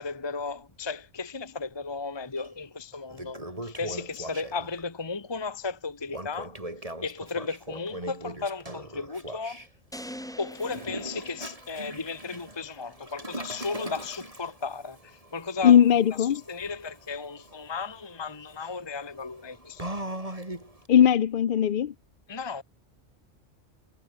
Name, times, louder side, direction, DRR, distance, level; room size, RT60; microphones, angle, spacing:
voice 1, 0.0-6.6 7.0-9.6 10.4-15.8 16.2-20.1 22.3-22.6, left 4 dB, 25° left, 1.1 m, -35 dB
Toilet flush, 2.4-2.5 2.9-4.8 6.1-9.7 10.5-20.9, right 1 dB, 30° right, 5.6 m, -40 dB
sound 1, 9.9-12.2, equal, 5° left, 1.4 m, -43 dB
voice 2, 15.6-16.4 20.9-21.9, left 9 dB, 55° left, 0.7 m, -19 dB
omnidirectional pair, 1.2 m